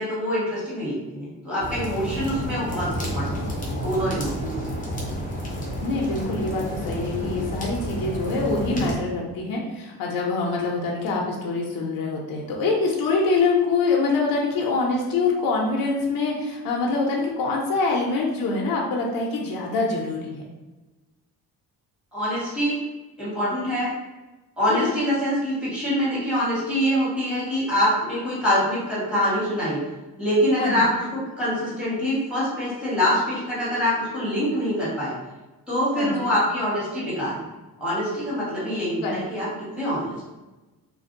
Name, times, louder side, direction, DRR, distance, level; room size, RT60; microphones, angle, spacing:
voice 1, 0.0-3.6 3.8-4.8 22.1-22.8 23.2-23.9 24.6-29.8 30.2-35.1 35.7-37.4 37.8-40.1, equal, 5° right, -9 dB, 1.3 m, -25 dB
sound 1, 1.6-9.0, equal, 20° left, 0.7 m, -30 dB
voice 2, 5.8-20.4 24.7-24.9 30.6-30.8 36.0-36.3 39.0-39.2, left 3 dB, 65° left, -1 dB, 0.6 m, -25 dB
2.5 x 2.2 x 2.6 m, 1.1 s
cardioid pair, 120°, 37 cm